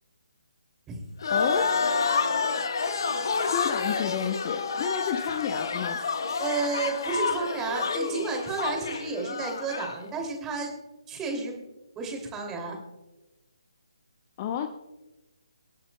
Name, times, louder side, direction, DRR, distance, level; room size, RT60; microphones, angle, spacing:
sound 1, 1.2-10.0, left 5 dB, 50° left, 1.3 m, -29 dB
voice 1, 1.3-1.7 3.5-6.0 14.4-14.7, left 9 dB, 30° left, 8 dB, 0.7 m, -31 dB
voice 2, 6.4-10.7 11.1-11.6 12.0-12.8, right 4 dB, 15° right, 2 dB, 2.6 m, -31 dB
26.0 x 8.8 x 2.2 m, 1.0 s
figure-of-eight pair, 145°, 3 cm